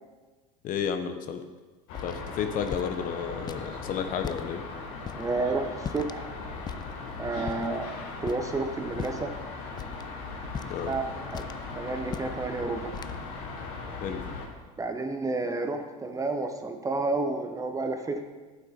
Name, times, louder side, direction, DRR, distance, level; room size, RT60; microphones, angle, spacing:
voice 1, 0.6-1.4 2.0-4.6 10.7-10.9 14.0-14.2, left 7 dB, 50° left, 7 dB, 0.9 m, -32 dB
sound 1, 1.9-14.5, left 4 dB, 70° left, 1.8 m, -39 dB
sound 2, 1.9-2.2 2.6-2.9 3.5-3.7 4.2-4.5 5.0-5.3 5.8-6.2 6.7-6.9 7.5-7.7 8.2-8.5 8.9-9.3 9.8-10.0 10.5-10.9 11.3-11.6 12.0-12.4 12.9-13.2, left 7 dB, 25° left, 0.4 m, -38 dB
voice 2, 5.1-6.3 7.2-7.9 8.2-9.3 10.8-11.4 11.8-12.9 14.8-18.2, right 3 dB, 20° right, 6 dB, 1.1 m, -30 dB
9.0 x 7.8 x 5.2 m, 1.3 s
supercardioid pair, 95°, 18 cm